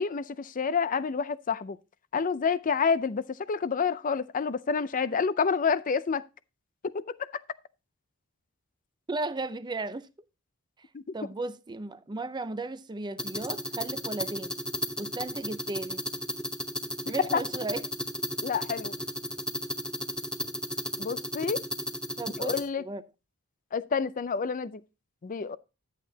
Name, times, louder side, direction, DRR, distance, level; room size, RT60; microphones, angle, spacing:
voice 1, 0.0-1.8 2.1-6.2 6.8-7.3 10.9-11.0 17.3-17.4 18.4-18.9 21.0-21.6 22.4-22.8 23.7-24.8 25.2-25.6, left 5 dB, 35° left, 0.5 m, -28 dB
voice 2, 9.1-10.1 11.1-14.5 15.0-16.0 17.1-17.9 22.2-23.0, right 2 dB, 20° right, 0.5 m, -35 dB
sound 1, 13.2-22.6, equal, 5° left, 0.8 m, -34 dB
11.5 x 8.2 x 2.8 m
head